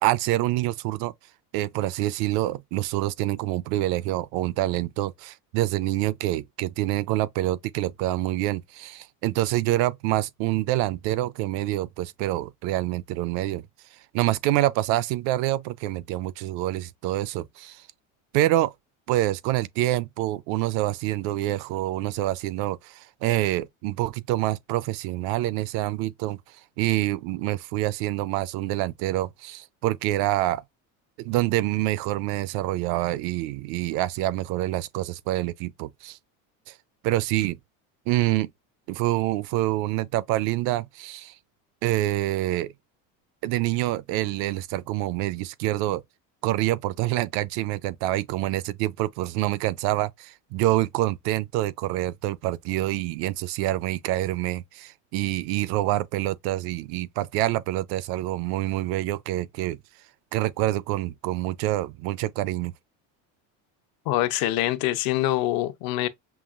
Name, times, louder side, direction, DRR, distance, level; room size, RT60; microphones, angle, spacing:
voice 1, 0.0-1.1 1.5-13.6 14.1-17.8 18.3-18.7 19.1-26.4 26.8-30.6 31.2-36.2 36.7-36.8 37.0-37.6 38.1-38.5 38.9-41.3 41.8-42.7 43.4-46.0 46.4-59.8 60.3-62.7, right 16 dB, 70° right, 0.5 m, -26 dB
voice 2, 64.1-66.1, left 15 dB, 65° left, 0.7 m, -25 dB
5.7 x 2.4 x 2.4 m
cardioid pair, 135°, 39 cm